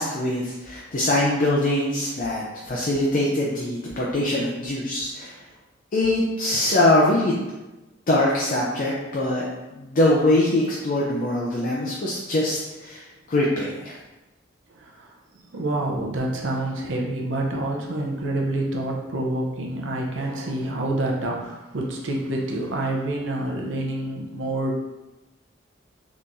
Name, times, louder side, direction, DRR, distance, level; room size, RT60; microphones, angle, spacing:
voice 1, 0.0-5.4 5.9-7.4 8.1-9.5 9.7-13.9, left 1 dB, 45° left, -4 dB, 0.4 m, -23 dB
voice 2, 14.7-15.1 15.5-24.8, right 1 dB, 85° right, -1 dB, 0.7 m, -27 dB
3.6 x 2.9 x 2.6 m, 1.1 s
head